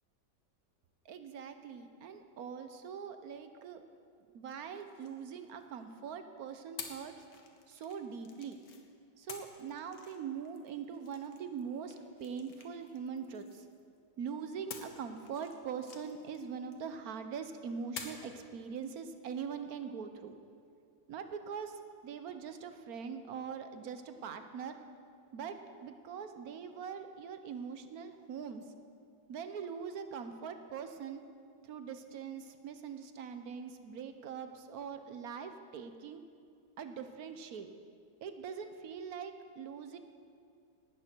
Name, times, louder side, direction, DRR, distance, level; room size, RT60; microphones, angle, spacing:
voice 1, 1.0-3.8 4.3-7.2 7.7-8.6 9.2-13.7 14.2-20.3 21.1-24.8 25.3-28.7 29.3-31.2 31.6-36.2 36.8-37.7 38.2-40.0, right 6 dB, 60° right, 8 dB, 1.2 m, -42 dB
sound 1, 4.5-5.9 6.8-8.8 9.3-14.0 14.7-17.2 18.0-18.4, left 5 dB, 60° left, 1.6 m, -51 dB
18.0 x 12.5 x 4.5 m, 2.3 s
omnidirectional pair, 1.9 m